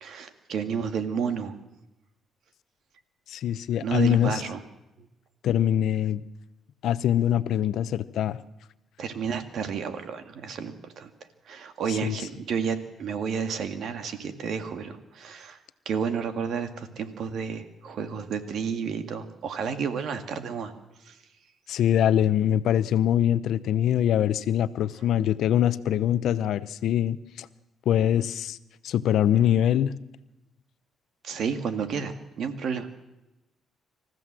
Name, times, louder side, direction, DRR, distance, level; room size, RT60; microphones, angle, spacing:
voice 1, 0.0-1.6 3.8-4.6 5.0-5.1 9.0-11.1 11.5-15.6 15.9-20.7 21.0-21.2 31.2-32.9, right 6 dB, 70° right, 8 dB, 2.1 m, -31 dB
voice 2, 3.3-4.4 5.4-6.2 6.8-8.4 12.0-12.1 21.7-27.5 27.9-28.6 28.8-29.9, left 10 dB, 75° left, 15 dB, 0.8 m, -23 dB
26.5 x 14.5 x 7.6 m, 0.95 s
cardioid pair, 90°, 0 cm